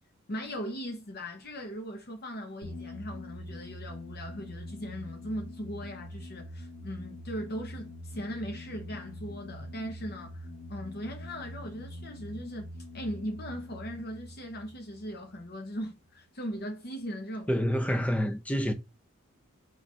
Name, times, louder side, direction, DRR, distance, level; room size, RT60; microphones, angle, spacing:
voice 1, 0.3-12.7 12.9-17.5, equal, 45° left, 0.8 m, -39 dB
sound 1, 2.6-15.8, left 1 dB, 70° left, 2.0 m, -44 dB
voice 2, 17.5-18.7, equal, 5° left, 0.4 m, -27 dB
4.7 x 2.4 x 4.1 m
head